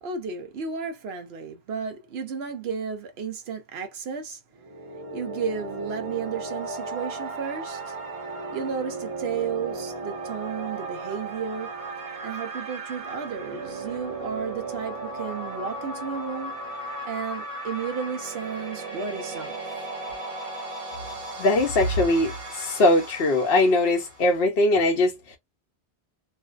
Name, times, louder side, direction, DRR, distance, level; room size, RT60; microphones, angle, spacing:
voice 1, 0.0-4.4 5.1-8.0 8.5-11.7 12.2-16.6 17.0-19.5, right 6 dB, 70° right, 0.9 m, -33 dB
sound 1, 4.6-24.4, right 2 dB, 35° right, 0.8 m, -36 dB
voice 2, 21.4-25.4, left 2 dB, 70° left, 0.8 m, -21 dB
2.6 x 2.1 x 2.3 m
omnidirectional pair, 1.1 m